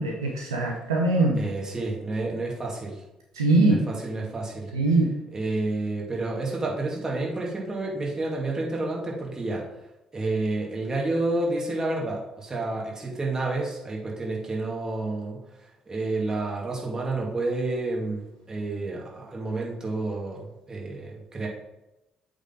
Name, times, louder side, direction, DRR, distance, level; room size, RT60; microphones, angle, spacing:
voice 1, 0.0-1.4 3.4-3.8 4.7-5.1, right 2 dB, 85° right, 0 dB, 0.8 m, -22 dB
voice 2, 1.3-3.0 3.7-4.7 5.3-9.7 10.1-15.4 15.9-21.5, right 2 dB, 25° right, -3 dB, 2.4 m, -30 dB
8.0 x 4.0 x 3.9 m, 0.94 s
figure-of-eight pair, 50°, 2 cm